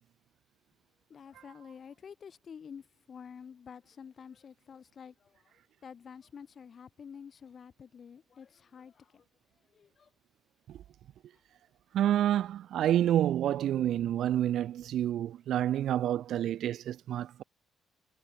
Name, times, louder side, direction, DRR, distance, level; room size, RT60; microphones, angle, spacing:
voice 1, 1.1-5.5 5.8-9.2 9.7-10.1, left 7 dB, 50° left, 6.4 m, -49 dB
voice 2, 11.9-17.4, right 11 dB, 75° right, 2.5 m, -28 dB
cardioid pair, 90°, 0 cm